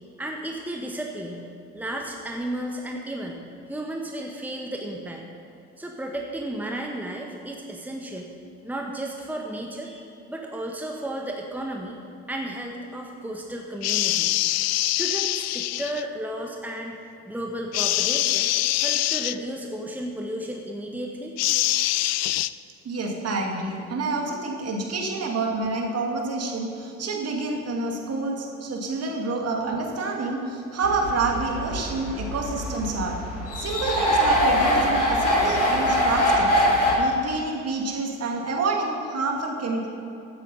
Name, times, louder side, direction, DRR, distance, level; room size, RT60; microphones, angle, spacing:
voice 1, 0.2-1.4 1.7-5.2 5.8-8.3 8.6-12.0 12.3-14.4 14.9-18.5 18.8-21.4, right 1 dB, 5° right, 1 dB, 1.5 m, -33 dB
sound 1, 13.8-16.0 17.7-19.4 21.4-22.5, left 16 dB, 45° left, 0.4 m, -24 dB
voice 2, 22.8-33.2 33.6-36.5 37.0-39.9, right 3 dB, 45° right, 0 dB, 2.5 m, -28 dB
sound 2, 30.8-36.9, equal, 80° left, 3.4 m, -23 dB
15.0 x 8.7 x 5.5 m, 2.7 s
figure-of-eight pair, 50°, 36 cm